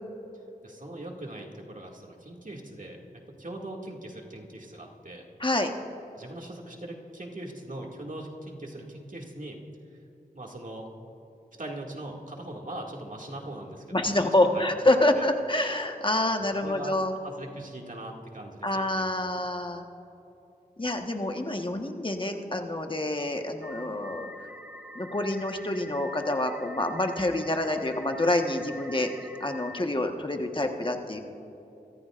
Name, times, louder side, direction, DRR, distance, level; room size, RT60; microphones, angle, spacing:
voice 1, 0.6-5.2 6.2-9.6 9.9-10.0 10.3-10.9 11.6-14.0 14.4-14.7 15.1-15.3 16.6-19.4, right 1 dB, 55° right, -1 dB, 2.3 m, -41 dB
voice 2, 5.4-5.7 13.9-17.1 18.6-19.8 20.8-24.5 24.9-29.1 29.4-31.2, left 1 dB, 35° left, 4 dB, 1.4 m, -27 dB
sound 1, 23.6-29.8, equal, 10° right, 1.5 m, -45 dB
23.5 x 14.5 x 2.5 m, 3.0 s
wide cardioid pair, 45°, 16 cm